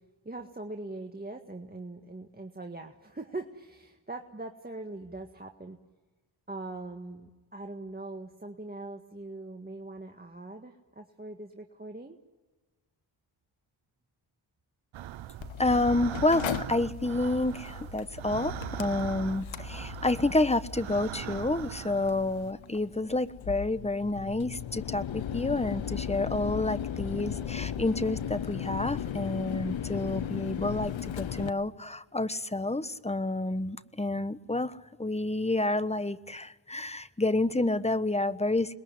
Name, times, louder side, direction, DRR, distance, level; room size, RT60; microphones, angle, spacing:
voice 1, 0.3-5.8 6.5-12.2, right 2 dB, 20° right, 3 dB, 1.8 m, -41 dB
sound 1, 14.9-22.5, right 12 dB, 85° right, 0.8 m, -40 dB
Mechanical fan, 15.4-31.5, left 9 dB, 80° left, 1.1 m, -37 dB
voice 2, 15.6-38.8, left 2 dB, 15° left, 14 dB, 1.2 m, -29 dB
27.5 x 21.5 x 9.6 m, 1.3 s
cardioid pair, 55°, 46 cm